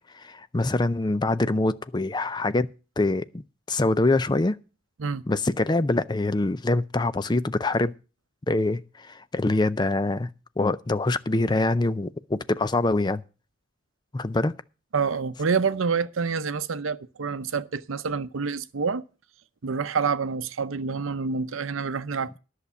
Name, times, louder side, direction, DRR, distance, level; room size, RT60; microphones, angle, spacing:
voice 1, 0.1-2.7 3.0-3.4 3.7-4.6 5.3-7.9 8.5-13.2 14.1-14.5, left 2 dB, 20° left, 0.4 m, -24 dB
voice 2, 14.9-19.0 19.6-22.4, right 5 dB, 85° right, 0.7 m, -27 dB
11.0 x 6.6 x 7.0 m
head